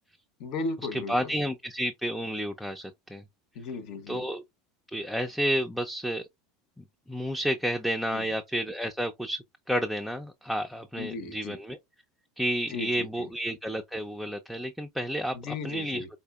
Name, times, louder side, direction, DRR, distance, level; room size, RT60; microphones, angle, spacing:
voice 1, 0.4-1.3 3.5-4.3 8.1-8.3 11.0-11.6 12.7-13.3 15.3-16.1, left 3 dB, 60° left, 0.8 m, -36 dB
voice 2, 0.9-3.2 4.1-4.4 4.9-6.3 7.1-11.8 12.4-16.0, equal, ahead, 0.4 m, -31 dB
4.2 x 2.6 x 2.3 m
hypercardioid pair, 95°, 0 cm